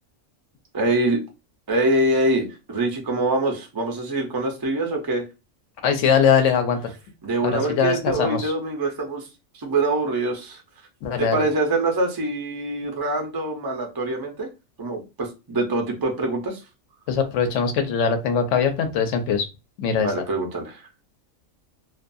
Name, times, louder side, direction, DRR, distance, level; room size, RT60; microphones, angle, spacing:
voice 1, 0.7-1.2 1.7-5.2 7.2-9.3 9.6-10.6 11.2-14.5 14.8-16.6 20.0-20.9, right 2 dB, 40° right, 2 dB, 0.3 m, -24 dB
voice 2, 5.8-6.9 7.4-8.5 11.0-11.4 17.1-19.5 19.8-20.1, left 6 dB, 70° left, 7 dB, 0.9 m, -21 dB
2.5 x 2.3 x 2.6 m, 0.27 s
omnidirectional pair, 1.4 m